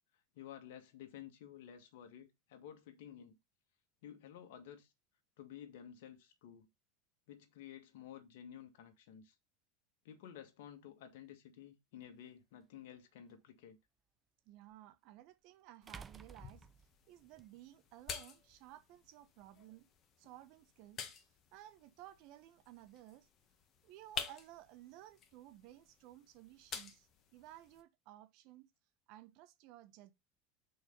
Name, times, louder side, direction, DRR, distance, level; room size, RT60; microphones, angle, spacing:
voice 1, 0.3-3.4 4.0-4.9 5.4-6.7 7.3-9.3 10.0-13.8, left 10 dB, 70° left, 1.8 m, -53 dB
sound 1, 12.0-12.1 14.7-14.8 15.9-17.5, right 5 dB, 25° right, 0.7 m, -53 dB
voice 2, 14.4-16.7 17.1-19.9 20.2-21.1 21.5-23.3 23.8-28.7 29.1-30.1, right 14 dB, 60° right, 1.2 m, -56 dB
sound 2, 15.8-27.8, left 6 dB, 40° left, 1.8 m, -50 dB
6.4 x 4.7 x 5.4 m
hypercardioid pair, 90°, 0 cm